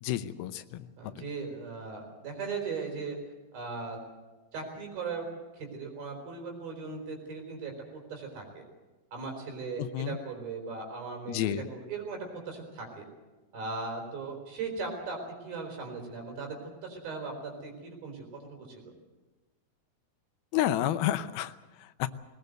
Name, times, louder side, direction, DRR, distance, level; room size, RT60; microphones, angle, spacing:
voice 1, 0.0-1.1 9.8-10.2 11.3-11.7 20.5-22.1, left 12 dB, 90° left, 12 dB, 2.7 m, -31 dB
voice 2, 1.0-3.2 3.5-4.0 4.5-5.3 5.5-8.7 9.1-12.2 12.5-13.1 13.5-16.6 16.8-18.9, right 4 dB, 75° right, 2 dB, 6.2 m, -38 dB
20.0 x 19.5 x 7.9 m, 1.2 s
omnidirectional pair, 4.2 m